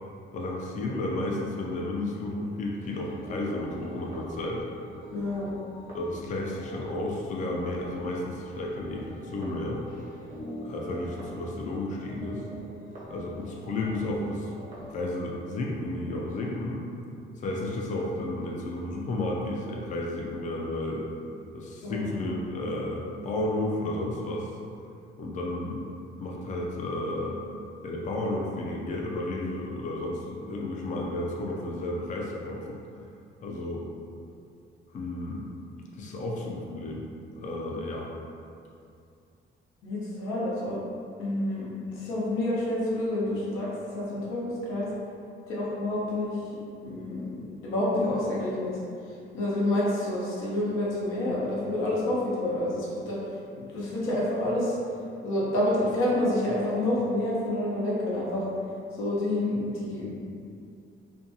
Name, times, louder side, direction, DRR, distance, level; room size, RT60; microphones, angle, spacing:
voice 1, 0.3-4.6 5.9-9.8 10.6-12.5 13.1-14.5 14.9-16.8 17.4-21.1 21.5-24.5 25.2-27.4 27.8-32.8 33.4-33.9 34.9-35.5 35.9-37.1 37.4-38.1, left 1 dB, 40° left, -2 dB, 0.4 m, -32 dB
sound 1, 2.7-15.1, equal, 45° right, 0.7 m, -44 dB
voice 2, 5.1-5.5 21.8-22.1 36.1-36.3 39.8-40.8 41.2-44.9 45.5-46.4 46.8-48.8 49.3-53.2 53.6-54.8 55.2-58.5 58.9-60.1, left 1 dB, 90° left, -6 dB, 0.7 m, -28 dB
2.6 x 2.2 x 2.7 m, 2.5 s
cardioid pair, 90°, 20 cm